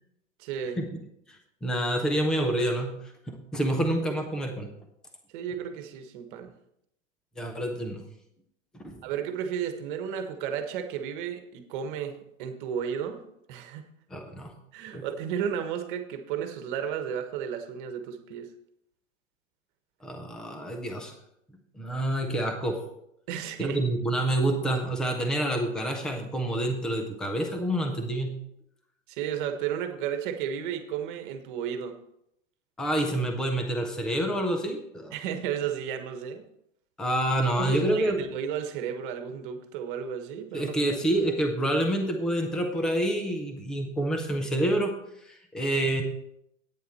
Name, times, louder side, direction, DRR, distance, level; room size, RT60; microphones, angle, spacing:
voice 1, 0.4-0.8 5.3-6.5 9.0-13.2 13.5-13.9 14.7-18.5 23.3-23.8 29.1-31.9 35.1-36.4 37.6-40.8, right 8 dB, 40° right, 7 dB, 1.3 m, -33 dB
voice 2, 1.3-4.7 7.4-8.0 8.8-9.0 14.1-14.5 14.9-15.0 20.0-21.1 21.7-22.8 23.6-28.4 32.8-35.1 37.0-38.3 40.5-44.9 45.2-46.0, right 1 dB, ahead, 4 dB, 0.3 m, -28 dB
10.5 x 9.0 x 4.3 m, 0.77 s
hypercardioid pair, 150°, 39 cm